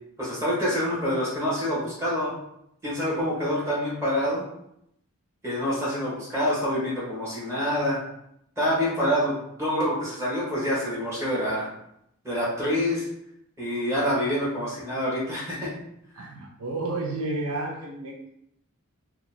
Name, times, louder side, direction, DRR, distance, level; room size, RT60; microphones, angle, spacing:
voice 1, 0.2-2.3 2.8-4.4 5.4-8.0 8.6-11.7 12.2-13.0 13.6-15.7, equal, 15° right, -8 dB, 1.3 m, -26 dB
voice 2, 16.1-18.3, right 2 dB, 65° right, -1 dB, 0.5 m, -31 dB
2.9 x 2.3 x 4.2 m, 0.76 s
head